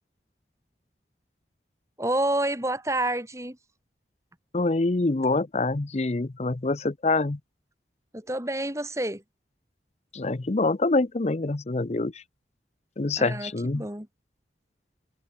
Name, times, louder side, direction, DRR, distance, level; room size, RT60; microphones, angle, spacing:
voice 1, 2.0-3.6 8.1-9.2 13.2-14.1, right 1 dB, 15° right, 3.3 m, -28 dB
voice 2, 4.5-7.4 10.1-12.2 13.0-13.8, left 3 dB, 35° left, 0.6 m, -25 dB
head